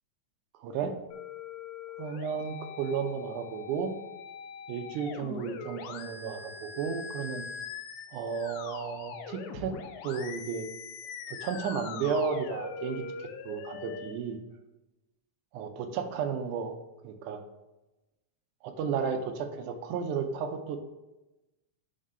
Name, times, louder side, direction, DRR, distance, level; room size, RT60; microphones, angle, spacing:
voice 1, 0.6-0.9 2.0-3.9 4.7-7.4 8.1-9.7 10.0-10.7 11.4-14.4 15.5-16.8 17.0-17.4 18.6-20.8, right 6 dB, 90° right, 5 dB, 2.1 m, -33 dB
sound 1, 1.1-14.1, left 6 dB, 85° left, 2.0 m, -42 dB
5.4 x 3.7 x 5.4 m, 1.0 s
omnidirectional pair, 3.5 m